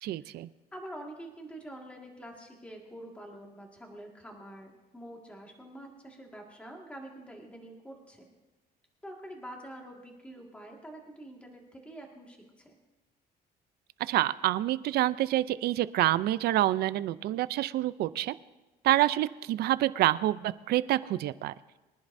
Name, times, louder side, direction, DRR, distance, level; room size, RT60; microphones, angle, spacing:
voice 1, 0.0-0.5 14.1-18.3 18.8-21.5, right 14 dB, 70° right, 16 dB, 0.5 m, -27 dB
voice 2, 0.7-8.3 9.0-12.8, right 1 dB, 5° left, 0 dB, 1.9 m, -46 dB
24.0 x 10.5 x 2.7 m, 1.1 s
cardioid pair, 110°, 17 cm